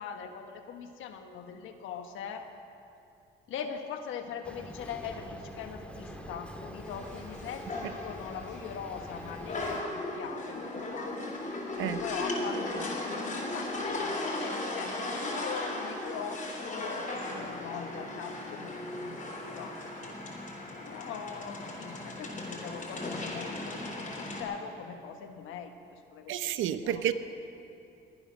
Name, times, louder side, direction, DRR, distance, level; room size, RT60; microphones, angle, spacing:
voice 1, 0.0-2.5 3.5-11.1 11.8-19.2 19.5-19.8 20.8-26.3 26.8-27.0, left 7 dB, 85° left, 6 dB, 1.3 m, -41 dB
Boat Water vehicle, 4.4-9.8, equal, 5° left, 1.7 m, -45 dB
sound 1, 6.8-24.4, left 2 dB, 40° left, 3.8 m, -37 dB
voice 2, 26.3-27.1, right 11 dB, 90° right, 11 dB, 0.8 m, -30 dB
22.5 x 9.3 x 6.2 m, 2.7 s
cardioid pair, 90°, 20 cm